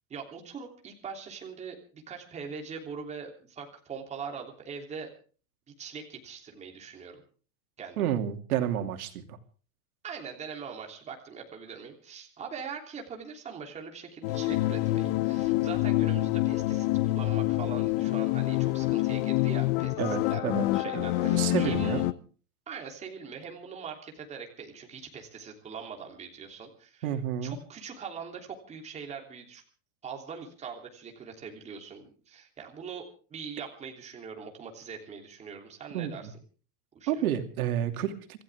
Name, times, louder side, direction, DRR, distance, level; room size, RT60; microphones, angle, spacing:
voice 1, 0.1-5.1 5.8-7.2 7.8-8.1 10.0-22.1 22.7-27.1 27.4-29.6 30.0-33.0 33.3-36.3 36.9-37.1, right 6 dB, 15° right, 2 dB, 3.2 m, -42 dB
voice 2, 8.0-9.4 20.0-20.7 20.9-22.0 27.0-27.6 35.9-36.3 37.1-38.4, right 10 dB, 90° right, 7 dB, 2.8 m, -30 dB
sound 1, 14.2-22.1, left 18 dB, 35° left, 0.8 m, -27 dB
26.5 x 15.0 x 3.6 m, 0.40 s
supercardioid pair, 170°, 42 cm